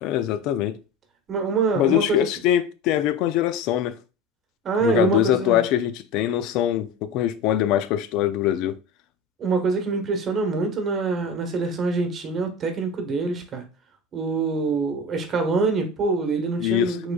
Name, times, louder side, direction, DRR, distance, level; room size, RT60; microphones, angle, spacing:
voice 1, 0.0-0.8 1.8-4.0 4.8-8.8 16.6-17.0, left 12 dB, 60° left, 0.4 m, -23 dB
voice 2, 1.3-2.3 4.6-5.6 9.4-13.6 14.1-17.1, right 4 dB, 40° right, 1.2 m, -25 dB
4.9 x 3.8 x 2.3 m
hypercardioid pair, 85°, 0 cm